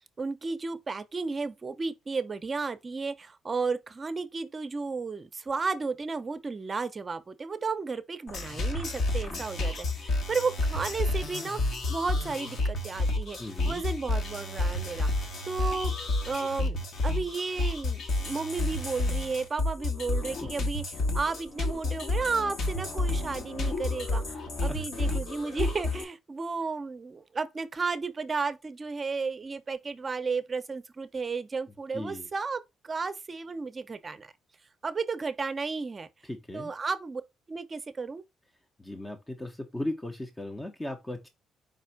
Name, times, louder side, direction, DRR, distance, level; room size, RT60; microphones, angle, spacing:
voice 1, 0.2-13.4 13.6-15.9 16.3-20.8 21.1-34.3 34.8-36.1 36.5-37.2 37.5-38.2, right 4 dB, 35° right, 0.6 m, -33 dB
sound 1, 8.3-26.0, left 2 dB, 65° left, 1.1 m, -30 dB
voice 2, 13.4-13.8 20.4-20.5 24.7-24.8 31.9-32.3 36.2-36.7 38.8-41.3, left 1 dB, 15° left, 0.6 m, -37 dB
5.0 x 2.4 x 4.4 m
cardioid pair, 90°, 0 cm